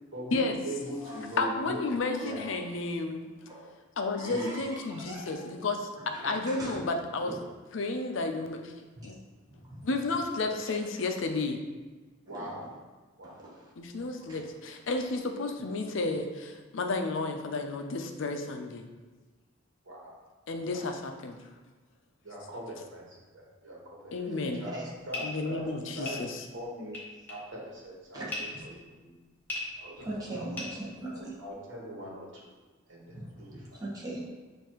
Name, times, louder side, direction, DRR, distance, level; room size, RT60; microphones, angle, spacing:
voice 1, 0.1-1.8 2.2-2.4 4.3-4.6 12.3-12.6 13.2-13.4 14.2-14.3 19.8-20.2 20.7-20.8 22.2-24.0 24.5-27.0 27.3-29.1 29.8-30.6 31.1-32.5 32.9-33.8, right 1 dB, 70° right, -4 dB, 1.3 m, -41 dB
voice 2, 1.4-3.6 4.0-5.9 6.2-7.3 7.7-8.7 9.0-9.2 9.8-11.6 13.8-18.8 20.5-21.4 24.1-24.6 25.2-26.4, left 3 dB, 70° left, 5 dB, 0.5 m, -32 dB
voice 3, 2.1-2.7 3.5-3.7 4.2-5.4 6.0-6.8 7.3-7.4 9.0-9.1 9.6-9.8 12.3-12.5 13.2-13.7 14.3-14.4 24.3-24.9 28.1-28.2 30.0-31.3 33.1-34.3, right 1 dB, 20° right, -5 dB, 1.0 m, -41 dB
sound 1, 25.1-31.5, left 2 dB, 10° left, 0.8 m, -41 dB
6.5 x 2.6 x 3.0 m, 1.3 s
head